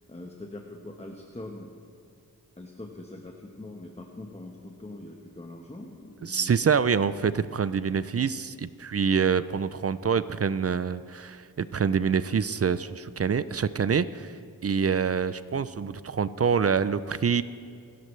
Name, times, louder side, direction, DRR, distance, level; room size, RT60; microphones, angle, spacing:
voice 1, 0.1-1.7 2.6-6.7, left 2 dB, 20° left, 1 dB, 1.1 m, -43 dB
voice 2, 6.2-17.4, right 6 dB, 45° right, 15 dB, 0.4 m, -26 dB
28.5 x 11.0 x 3.2 m, 2.4 s
wide cardioid pair, 90°, 36 cm